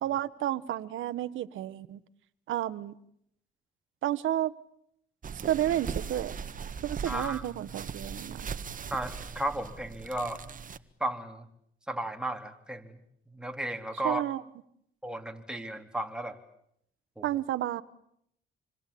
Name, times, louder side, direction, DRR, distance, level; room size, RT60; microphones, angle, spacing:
voice 1, 0.0-2.0 2.5-3.0 4.0-4.5 5.5-6.3 6.8-8.4 14.0-14.4 17.2-17.8, right 12 dB, 80° right, 13 dB, 1.4 m, -31 dB
sound 1, 5.2-10.8, right 6 dB, 45° right, 1.7 m, -39 dB
voice 2, 7.1-7.4 8.9-10.4 11.0-11.5 11.9-13.0 13.3-14.2 15.0-16.4 17.2-17.3, right 1 dB, 5° right, 4 dB, 3.8 m, -34 dB
27.0 x 25.5 x 8.7 m, 0.73 s
cardioid pair, 90°, 20 cm